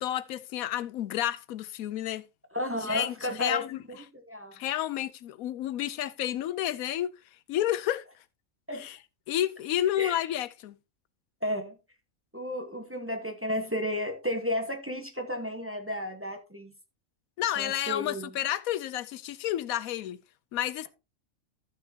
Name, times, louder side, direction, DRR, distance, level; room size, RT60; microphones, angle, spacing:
voice 1, 0.0-2.3 2.8-3.8 4.5-7.1 7.5-8.0 8.7-9.0 9.3-10.8 17.4-20.2 20.5-20.9, left 12 dB, 85° left, 1.1 m, -30 dB
voice 2, 2.5-4.6 8.7-8.9 10.0-10.2 11.4-11.8 12.3-16.7 17.6-18.3, left 1 dB, 10° right, 1.1 m, -33 dB
14.0 x 6.5 x 2.8 m
omnidirectional pair, 1.4 m